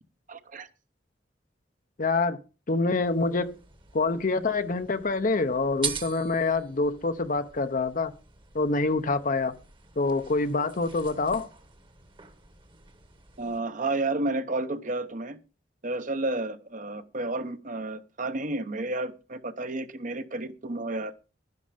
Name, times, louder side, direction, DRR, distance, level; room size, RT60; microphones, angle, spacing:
voice 1, 0.3-0.7 13.4-15.4 15.8-21.1, right 2 dB, 45° right, 1.0 m, -31 dB
voice 2, 2.0-2.4 2.7-3.5 3.9-8.1 8.5-9.5 10.0-11.5, left 3 dB, 45° left, 0.8 m, -26 dB
sound 1, 3.0-13.6, right 6 dB, 30° right, 1.3 m, -43 dB
11.5 x 10.5 x 5.1 m
head